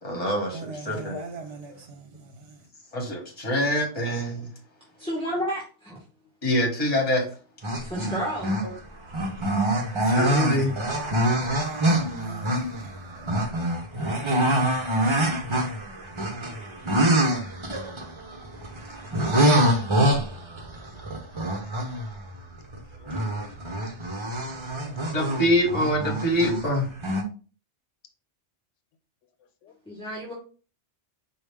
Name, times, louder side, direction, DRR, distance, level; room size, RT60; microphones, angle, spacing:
voice 1, 0.0-1.1 2.9-4.5 6.4-7.2 10.1-10.7 25.1-26.9, equal, 35° left, 1.3 m, -25 dB
voice 2, 0.5-2.6 11.6-12.9 13.2-13.3, right 4 dB, 65° right, 0.9 m, -41 dB
voice 3, 5.0-6.0 7.8-8.6 29.9-30.3, equal, 5° left, 1.1 m, -31 dB
sound 1, 7.6-8.8 9.1-22.8 23.1-26.6 27.0-27.2, right 1 dB, 30° right, 0.7 m, -25 dB
voice 4, 21.0-21.3 23.0-23.6 23.9-24.0 24.7-25.1 29.6-29.7, left 10 dB, 90° left, 0.9 m, -47 dB
4.9 x 2.4 x 3.3 m
omnidirectional pair, 1.2 m